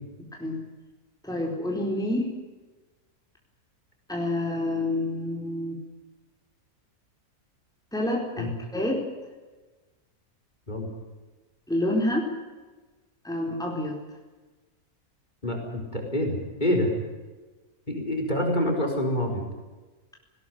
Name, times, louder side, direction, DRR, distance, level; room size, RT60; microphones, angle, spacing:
voice 1, 1.2-2.3 4.1-5.8 7.9-9.0 11.7-12.3 13.2-14.0, left 1 dB, ahead, -1 dB, 4.2 m, -28 dB
voice 2, 15.4-16.9 17.9-19.4, left 1 dB, 30° left, 1 dB, 5.1 m, -26 dB
20.0 x 18.5 x 9.5 m, 1.2 s
omnidirectional pair, 1.6 m